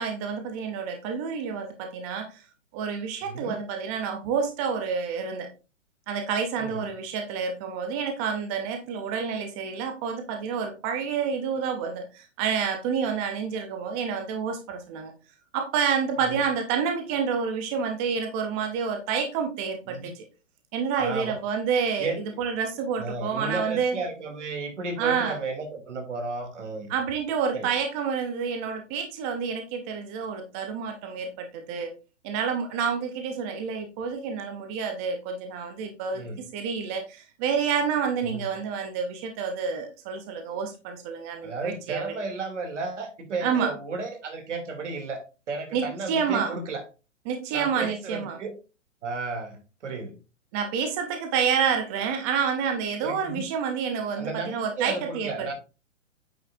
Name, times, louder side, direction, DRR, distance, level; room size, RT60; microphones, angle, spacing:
voice 1, 0.0-2.4 2.7-5.5 6.1-15.1 15.5-20.2 20.7-24.0 25.0-25.4 26.9-31.9 32.2-42.0 43.4-43.7 45.7-46.6 47.3-48.4 50.5-55.5, right 6 dB, 10° right, 6 dB, 0.4 m, -29 dB
voice 2, 3.2-3.6 6.6-6.8 16.3-16.4 19.9-20.1 21.0-21.3 22.0-22.2 23.0-26.9 27.5-27.7 36.1-36.4 38.2-38.4 41.4-45.2 45.5-46.8 47.5-48.5 49.0-50.2 53.0-53.4 54.2-55.5, right 4 dB, 65° right, 5 dB, 2.5 m, -33 dB
8.7 x 6.2 x 2.5 m, 0.31 s
hypercardioid pair, 130°, 39 cm